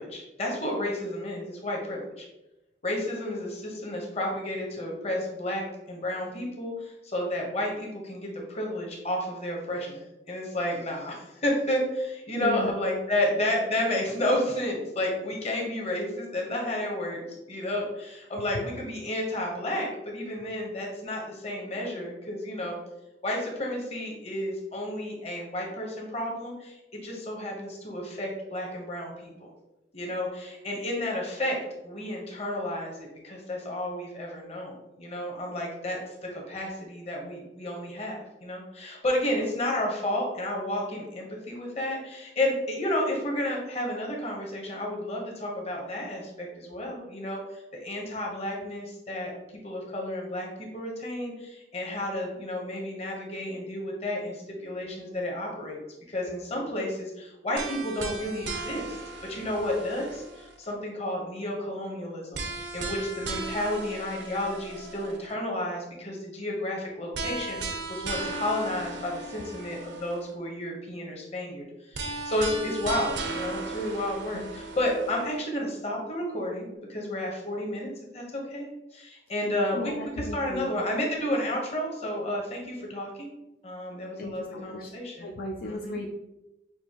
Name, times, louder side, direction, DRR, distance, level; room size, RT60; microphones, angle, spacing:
voice 1, 0.0-2.3 2.8-22.8 23.2-29.5 29.9-36.0 36.3-49.3 49.6-55.8 56.1-83.3 83.6-85.3 85.6-86.0, left 1 dB, 35° left, -1 dB, 0.9 m, -31 dB
voice 2, 12.3-12.7 74.3-74.5 79.7-80.7 84.2-84.9 85.2-86.1, left 1 dB, 55° left, 0 dB, 0.4 m, -35 dB
sound 1, 57.6-60.7 62.3-65.3 67.1-70.3 71.9-75.4, right 3 dB, 75° right, 0.6 m, -36 dB
6.2 x 2.6 x 2.9 m, 0.96 s
head